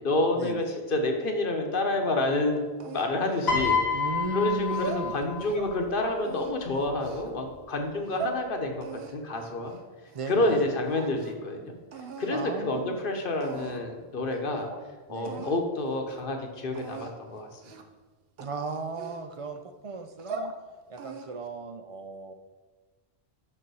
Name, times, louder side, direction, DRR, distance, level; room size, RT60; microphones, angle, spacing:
voice 1, 0.0-2.6 2.9-4.0 4.3-9.7 10.3-11.7 12.2-14.7 15.1-17.7, left 2 dB, 60° left, 3 dB, 1.1 m, -29 dB
sound 1, 2.8-4.1 4.6-5.8 6.2-7.3 7.9-8.4 8.8-10.6 10.8-11.5 11.9-12.3 13.0-13.1 13.4-13.9 14.3-14.4 14.7-14.8 15.2-15.6 16.0-16.2 16.7-17.1 17.6-18.0 18.4-19.6 20.0-20.6 21.0-21.5, right 4 dB, 70° right, 0.9 m, -40 dB
Piano, 3.5-5.8 6.9-7.1, left 5 dB, 85° left, 1.6 m, -28 dB
voice 2, 3.9-5.1 10.1-10.7 12.3-13.0 15.1-15.5 18.4-20.5 20.9-22.3, right 3 dB, 50° right, 7 dB, 0.4 m, -36 dB
5.6 x 5.2 x 6.2 m, 1.3 s
omnidirectional pair, 1.1 m